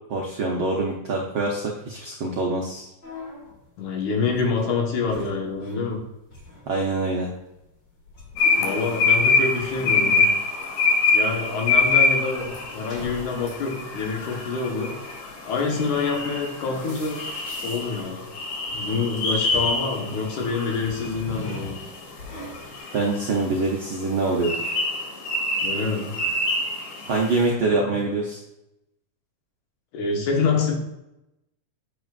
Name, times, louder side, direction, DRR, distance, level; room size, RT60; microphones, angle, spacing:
voice 1, 0.1-2.9 6.7-7.3 22.9-24.8 27.0-28.4, right 3 dB, 70° right, -1 dB, 1.2 m, -25 dB
sound 1, 3.0-6.0 6.3-22.8, left 2 dB, 40° left, 2.5 m, -42 dB
voice 2, 3.8-6.0 8.6-10.3 11.1-15.0 15.5-17.2 17.6-18.3 18.7-21.8 25.6-26.3 27.9-28.0 29.9-30.7, left 4 dB, 70° left, 1 dB, 2.7 m, -26 dB
sound 2, 8.4-27.4, left 3 dB, 90° left, 3.1 m, -25 dB
8.8 x 8.0 x 2.5 m, 0.89 s
omnidirectional pair, 3.7 m